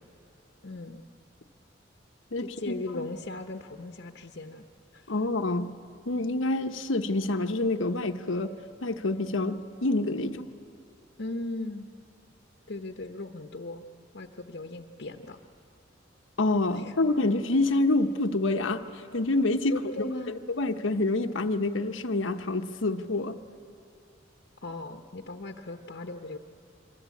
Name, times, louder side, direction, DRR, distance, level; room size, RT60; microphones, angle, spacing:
voice 1, 0.6-1.0 2.4-4.6 4.9-5.1 11.2-11.9 12.7-13.8 14.1-15.4 16.7-16.9 19.7-20.3 24.6-26.4, left 2 dB, 60° left, 4 dB, 1.0 m, -38 dB
voice 2, 2.3-3.1 5.1-5.7 6.1-8.5 8.8-10.5 16.4-18.8 19.1-19.7 20.6-23.4, left 2 dB, 85° left, 6 dB, 1.1 m, -27 dB
26.5 x 24.0 x 8.5 m, 2.7 s
head